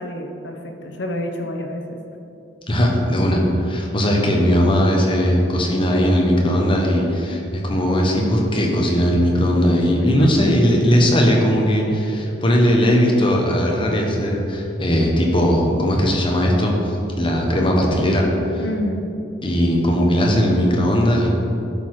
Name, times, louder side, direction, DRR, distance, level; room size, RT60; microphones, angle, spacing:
voice 1, 0.0-2.0 10.0-10.3 18.6-19.0, left 1 dB, 65° left, 4 dB, 0.9 m, -28 dB
voice 2, 2.7-18.3 18.5-18.6 19.4-21.3, equal, 30° left, 0 dB, 1.1 m, -18 dB
11.5 x 4.3 x 4.7 m, 2.8 s
head